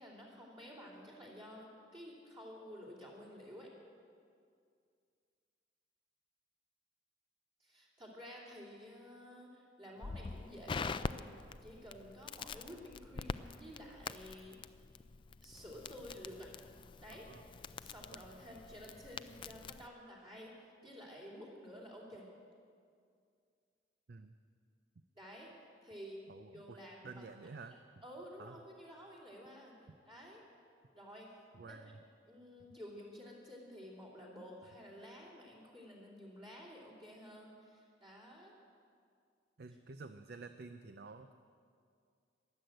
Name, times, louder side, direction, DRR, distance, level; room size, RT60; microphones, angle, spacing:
voice 1, 0.0-3.7 7.6-11.3 11.6-14.6 15.4-16.6 17.0-17.3 17.8-20.5 20.8-22.3 25.2-25.5 25.8-26.2 26.5-27.2 28.0-30.4 30.9-31.3 31.6-31.8 32.3-38.5, equal, 30° right, -5 dB, 2.9 m, -52 dB
Crackle, 10.0-19.9, left 4 dB, 25° left, 0.3 m, -45 dB
voice 2, 26.3-26.8 27.0-27.7 28.4-28.6 29.9-30.0 31.5-32.0 39.6-41.3, right 4 dB, 60° right, 9 dB, 0.5 m, -50 dB
22.0 x 7.9 x 7.9 m, 2.3 s
head